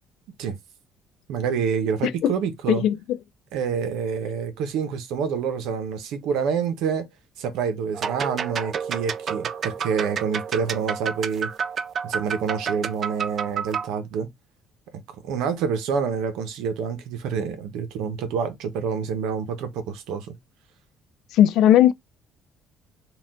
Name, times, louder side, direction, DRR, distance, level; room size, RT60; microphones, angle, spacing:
voice 1, 1.3-2.8 3.5-7.1 7.4-11.5 12.0-14.3 14.9-20.3, right 6 dB, 80° right, 0.9 m, -27 dB
voice 2, 2.7-3.2 21.3-21.9, left 11 dB, 70° left, 0.4 m, -18 dB
sound 1, 7.9-13.9, right 7 dB, 45° right, 0.4 m, -30 dB
4.3 x 2.4 x 3.6 m
cardioid pair, 115°, 0 cm